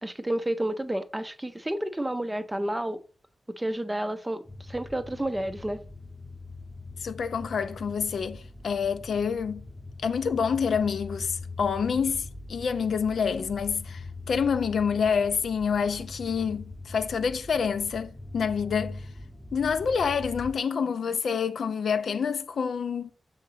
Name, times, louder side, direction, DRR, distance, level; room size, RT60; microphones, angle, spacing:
voice 1, 0.0-3.0 3.5-5.8, right 1 dB, 10° right, 0.4 m, -30 dB
sound 1, 4.4-20.5, left 2 dB, 10° left, 0.8 m, -42 dB
voice 2, 7.0-9.6 10.0-19.1 19.5-23.1, left 6 dB, 85° left, 0.5 m, -27 dB
6.4 x 3.8 x 5.6 m
wide cardioid pair, 165°, 0 cm